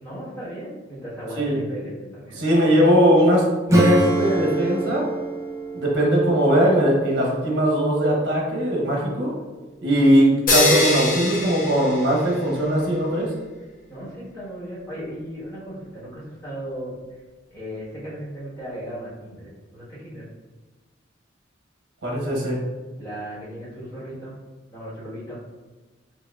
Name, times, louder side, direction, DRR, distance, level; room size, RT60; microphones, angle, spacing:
voice 1, 0.0-2.4 13.9-17.2 17.5-20.3 23.0-24.3 24.7-25.4, equal, 20° left, -9 dB, 1.3 m, -36 dB
voice 2, 2.4-3.4 3.7-5.1 5.7-9.3 9.8-13.3 22.0-22.6, equal, 85° right, -2 dB, 1.0 m, -19 dB
Acoustic guitar / Strum, 3.7-8.0, right 1 dB, 15° right, 0.5 m, -26 dB
sound 1, 10.5-12.6, left 2 dB, 45° left, 0.7 m, -22 dB
4.9 x 2.3 x 2.3 m, 1.3 s
head